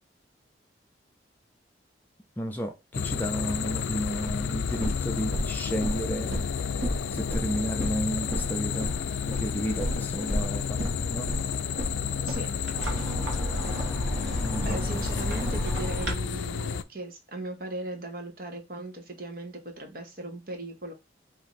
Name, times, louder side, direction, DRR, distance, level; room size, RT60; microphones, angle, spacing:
voice 1, 2.4-6.3 7.1-8.9 9.4-11.3 14.4-14.8, equal, 10° left, 0.4 m, -32 dB
sound 1, 2.9-16.8, left 7 dB, 85° left, 0.3 m, -31 dB
sound 2, 4.0-16.1, equal, 85° right, 1.3 m, -33 dB
voice 2, 12.3-12.6 14.6-20.9, right 2 dB, 50° right, 0.9 m, -38 dB
3.0 x 2.6 x 4.0 m
head